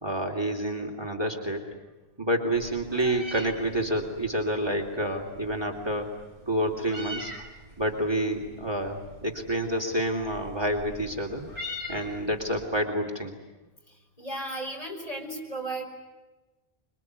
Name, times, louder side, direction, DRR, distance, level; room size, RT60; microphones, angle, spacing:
voice 1, 0.0-1.6 2.2-6.1 6.5-7.3 7.8-11.4 11.9-13.4, right 1 dB, 25° right, 3 dB, 3.1 m, -28 dB
Meow, 2.5-12.7, left 1 dB, 55° right, 4.7 m, -43 dB
voice 2, 14.2-15.8, right 2 dB, 35° left, 1 dB, 5.9 m, -34 dB
26.0 x 24.0 x 9.5 m, 1.2 s
omnidirectional pair, 1.1 m